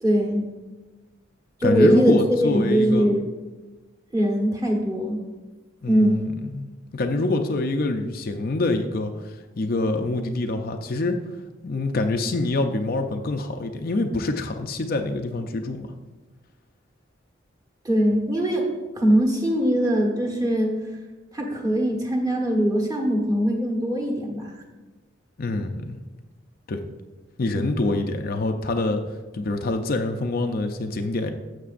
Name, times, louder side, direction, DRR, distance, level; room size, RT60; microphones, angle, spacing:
voice 1, 0.0-0.4 1.6-3.2 4.1-5.2 5.9-6.2 17.8-18.7 18.9-20.7 21.3-24.6, equal, 20° right, -1 dB, 1.2 m, -21 dB
voice 2, 1.6-3.1 5.8-11.2 11.6-15.9 25.4-26.0 26.7-26.8 27.4-29.0 29.3-31.3, left 2 dB, 45° left, 5 dB, 0.5 m, -25 dB
12.5 x 7.4 x 2.5 m, 1.2 s
head